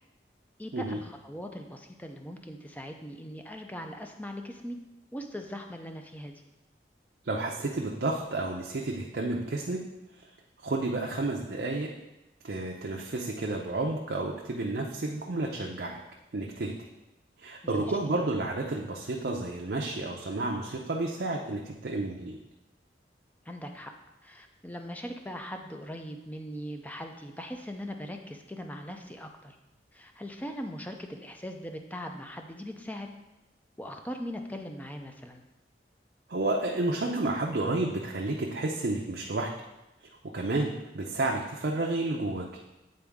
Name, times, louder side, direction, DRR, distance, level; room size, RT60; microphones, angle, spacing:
voice 1, 0.6-4.8 5.1-6.4 17.6-17.9 23.5-23.9 24.2-29.6 29.9-33.1 33.8-35.4, equal, 10° left, 4 dB, 0.4 m, -40 dB
voice 2, 7.2-9.8 10.6-11.9 12.4-16.0 16.3-16.8 17.4-22.4 36.3-39.5 40.3-42.5, right 2 dB, 60° right, -1 dB, 0.6 m, -31 dB
8.7 x 3.9 x 3.5 m, 0.98 s
head